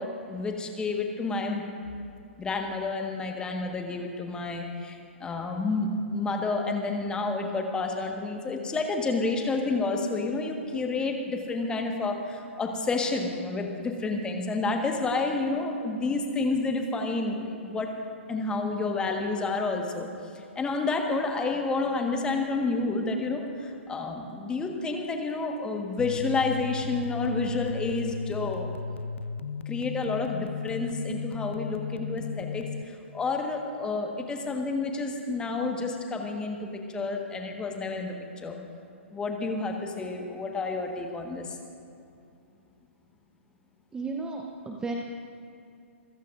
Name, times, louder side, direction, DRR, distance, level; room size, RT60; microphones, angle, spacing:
voice 1, 0.0-1.6 2.4-17.9 18.3-20.1 20.5-28.7 29.6-38.6 39.1-41.6, left 3 dB, 10° left, 3 dB, 1.6 m, -30 dB
sound 1, 26.0-32.8, left 5 dB, 70° left, 0.5 m, -35 dB
voice 2, 43.9-45.1, right 3 dB, 10° right, 2 dB, 0.9 m, -34 dB
27.0 x 15.5 x 2.6 m, 2.6 s
figure-of-eight pair, 120°, 7 cm